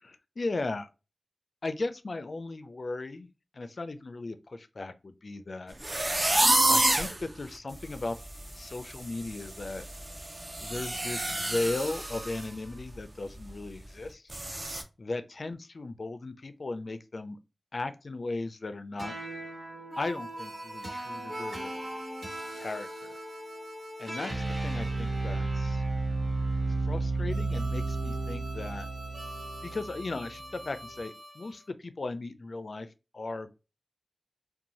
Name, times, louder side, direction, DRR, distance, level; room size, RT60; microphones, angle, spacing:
voice 1, 0.0-0.9 1.6-3.3 3.5-5.8 6.7-8.2 8.6-9.8 10.6-14.2 15.0-17.4 17.7-19.1 20.0-21.7 22.5-23.1 24.0-25.8 26.8-28.9 29.6-32.9 33.1-33.5, left 2 dB, 65° left, 0.3 m, -36 dB
sound 1, 5.8-7.2 7.8-7.9 8.2-8.5 8.8-12.4 12.8-13.0 13.4-13.5 14.3-14.8, right 1 dB, 35° right, 0.5 m, -28 dB
sound 2, 19.0-31.5, right 2 dB, 75° right, 1.2 m, -34 dB
2.6 x 2.2 x 2.9 m
wide cardioid pair, 70°, 0 cm